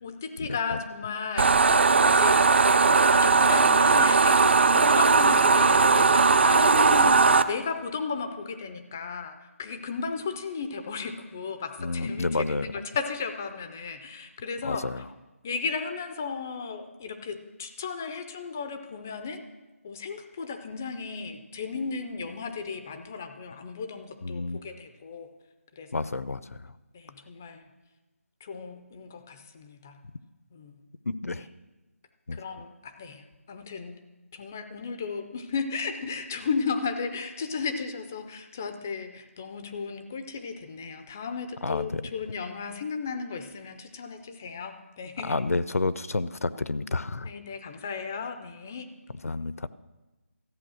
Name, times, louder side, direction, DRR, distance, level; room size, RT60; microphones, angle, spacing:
voice 1, 0.0-2.7 3.2-14.8 15.4-19.4 19.8-25.3 25.8-25.9 26.9-27.6 28.4-30.0 30.5-30.8 32.3-34.0 34.3-45.3 47.2-48.9, left 5 dB, 10° left, 8 dB, 0.3 m, -35 dB
sound 1, 1.4-7.4, right 4 dB, 50° right, 0.5 m, -19 dB
voice 2, 11.8-12.7 14.6-15.0 24.2-24.6 25.9-26.7 31.1-31.4 32.3-32.4 41.6-42.0 45.2-47.3 49.2-49.7, left 3 dB, 85° left, 16 dB, 0.6 m, -30 dB
14.0 x 8.3 x 6.2 m, 1.1 s
figure-of-eight pair, 170°, 8 cm